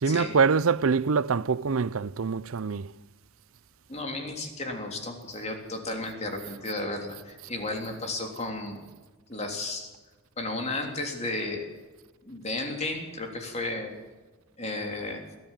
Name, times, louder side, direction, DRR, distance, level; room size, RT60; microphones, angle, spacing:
voice 1, 0.0-2.9, right 5 dB, 75° right, 0.6 m, -24 dB
voice 2, 3.9-8.8 9.3-9.9 10.4-11.6 12.2-13.9 14.6-15.2, left 2 dB, 30° left, 3.3 m, -33 dB
23.5 x 15.0 x 7.4 m
head